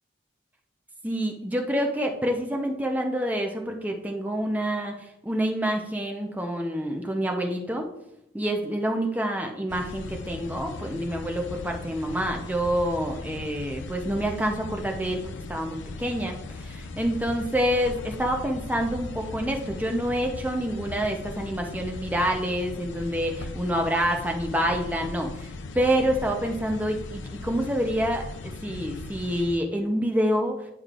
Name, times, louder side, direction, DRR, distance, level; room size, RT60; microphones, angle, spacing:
voice 1, 1.0-4.9 5.2-7.9 8.3-30.7, equal, 10° right, 2 dB, 0.7 m, -27 dB
sound 1, 9.7-29.6, left 3 dB, 80° left, 0.5 m, -38 dB
9.8 x 5.1 x 2.5 m, 0.83 s
head